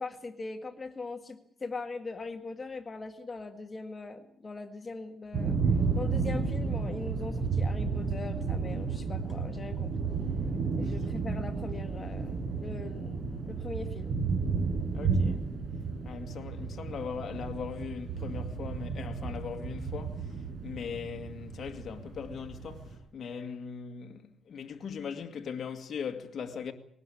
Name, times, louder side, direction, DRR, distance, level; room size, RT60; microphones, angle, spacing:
voice 1, 0.0-5.6 5.9-10.1 10.8-14.2, left 3 dB, 25° left, 1.9 m, -41 dB
sound 1, 5.3-23.0, right 4 dB, 50° right, 7.3 m, -32 dB
voice 2, 14.9-15.5 16.0-20.3 20.6-26.7, left 6 dB, 45° left, 2.1 m, -39 dB
21.0 x 19.0 x 8.5 m
cardioid pair, 140°, 0 cm